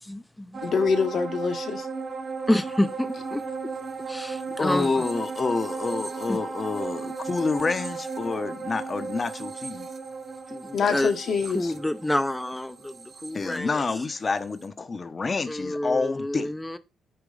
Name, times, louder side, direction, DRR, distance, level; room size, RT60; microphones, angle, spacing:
voice 1, 0.0-0.7 2.5-3.4 4.1-5.1 6.3-6.4 10.5-11.1 11.5-13.8 15.5-16.8, left 1 dB, 10° left, 0.6 m, -28 dB
sound 1, 0.5-14.2 14.6-14.7, right 4 dB, 40° right, 0.9 m, -35 dB
voice 2, 0.6-1.9 10.7-11.7, left 5 dB, 55° left, 1.2 m, -25 dB
voice 3, 4.5-9.9 13.3-16.5, left 4 dB, 30° left, 0.9 m, -28 dB
8.8 x 3.1 x 5.0 m
cardioid pair, 90°, 0 cm